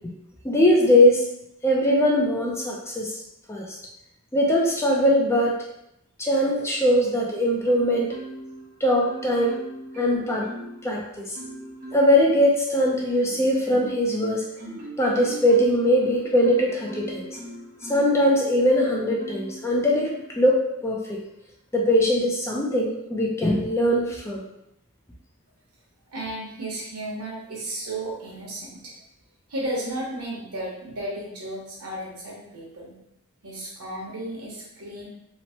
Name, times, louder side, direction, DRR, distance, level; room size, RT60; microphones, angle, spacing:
voice 1, 0.4-1.3 1.6-3.1 3.5-3.8 4.3-5.6 6.2-8.1 8.8-9.6 10.0-10.5 10.8-11.3 11.9-14.4 15.0-17.4 17.9-21.2 21.7-24.4, equal, 10° left, -2 dB, 0.4 m, -21 dB
Marimba xylophone, 7.6-8.6 9.0-10.9 11.3-12.2 12.8-18.2 18.7-19.6 20.1-20.4, right 1 dB, 40° right, 0.8 m, -39 dB
voice 2, 26.1-28.9 29.5-32.9 33.4-35.1, right 1 dB, 85° right, -4 dB, 1.0 m, -34 dB
3.0 x 2.1 x 2.8 m, 0.81 s
head